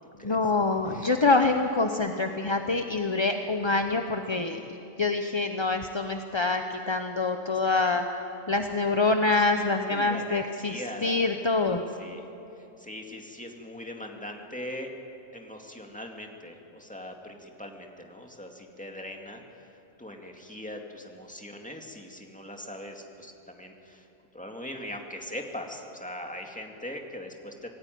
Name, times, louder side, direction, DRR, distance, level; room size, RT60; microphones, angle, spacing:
voice 1, 0.2-8.0 8.5-11.8, left 3 dB, 25° left, 5 dB, 0.7 m, -26 dB
voice 2, 7.5-8.0 9.9-11.3 12.0-12.2 12.6-14.9 15.3-19.4 20.0-24.1 24.3-27.7, left 1 dB, 5° left, 2 dB, 2.1 m, -41 dB
26.0 x 18.0 x 9.3 m, 2.9 s
omnidirectional pair, 1.6 m